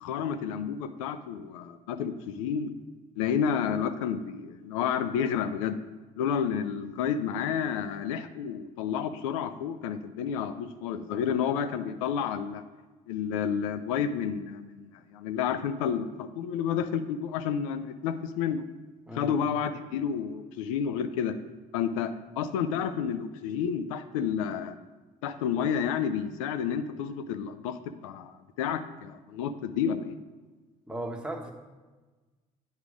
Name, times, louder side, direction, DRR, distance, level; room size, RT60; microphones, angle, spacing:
voice 1, 0.0-2.7 3.2-5.8 6.2-12.6 13.1-18.6 19.1-21.4 21.7-24.7 25.2-30.2, left 7 dB, 90° left, 10 dB, 0.4 m, -30 dB
voice 2, 19.1-19.4 30.9-31.5, right 1 dB, 5° right, 1 dB, 1.3 m, -36 dB
8.4 x 4.8 x 5.0 m, 1.3 s
hypercardioid pair, 65°, 17 cm